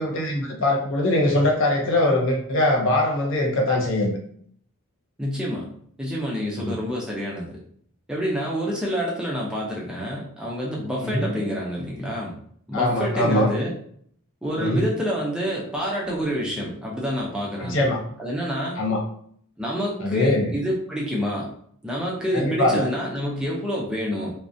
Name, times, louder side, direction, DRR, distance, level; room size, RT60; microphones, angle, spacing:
voice 1, 0.0-4.2 6.6-6.8 11.0-11.3 12.7-13.5 14.6-14.9 17.6-18.0 18.8-19.0 20.0-20.5 22.3-22.8, left 1 dB, 60° left, 1 dB, 0.6 m, -22 dB
voice 2, 5.2-5.7 6.0-7.6 8.1-12.3 12.7-13.7 14.4-17.9 18.2-18.8 19.6-21.5 21.8-24.3, equal, 5° right, -4 dB, 0.4 m, -27 dB
2.4 x 2.1 x 2.5 m, 0.63 s
head